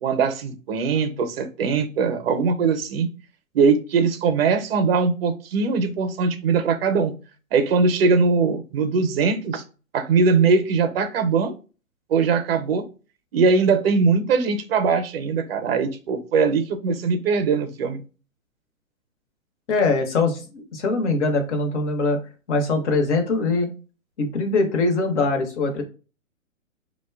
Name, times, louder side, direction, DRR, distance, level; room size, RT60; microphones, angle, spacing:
voice 1, 0.0-3.1 3.5-7.1 7.5-9.6 9.9-11.5 12.1-12.9 13.3-18.0, right 5 dB, 50° right, 9 dB, 0.5 m, -21 dB
voice 2, 19.7-22.2 22.5-23.7 24.2-25.8, left 3 dB, 55° left, 4 dB, 0.8 m, -22 dB
2.6 x 2.1 x 2.2 m, 0.35 s
hypercardioid pair, 140°, 41 cm